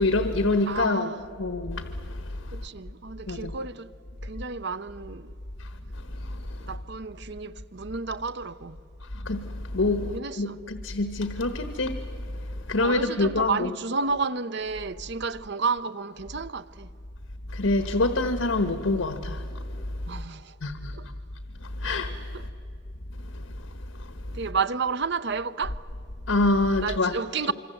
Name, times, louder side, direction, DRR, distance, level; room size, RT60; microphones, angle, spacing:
voice 1, 0.0-1.1 1.4-2.2 3.3-3.5 6.2-6.4 9.2-11.9 12.7-13.7 17.5-19.4 20.6-20.9 21.8-22.3 26.3-27.1, left 2 dB, 85° left, 1.3 m, -26 dB
voice 2, 0.7-1.2 2.5-3.9 4.2-5.3 6.7-8.8 10.1-10.6 12.8-16.9 20.1-20.5 21.0-21.1 22.3-22.4 24.3-25.8 26.8-27.5, right 4 dB, 55° right, 0.7 m, -31 dB
26.0 x 24.5 x 7.9 m
head